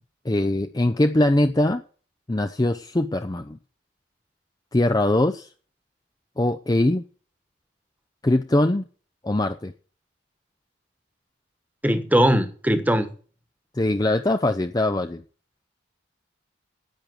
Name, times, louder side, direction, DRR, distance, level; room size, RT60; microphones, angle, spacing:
voice 1, 0.2-1.8 2.3-3.6 4.7-5.5 6.4-7.0 8.2-8.9 9.2-9.7 13.7-15.2, left 1 dB, 20° left, 0.5 m, -22 dB
voice 2, 11.8-13.1, equal, 10° right, 1.3 m, -20 dB
10.5 x 8.8 x 7.8 m
head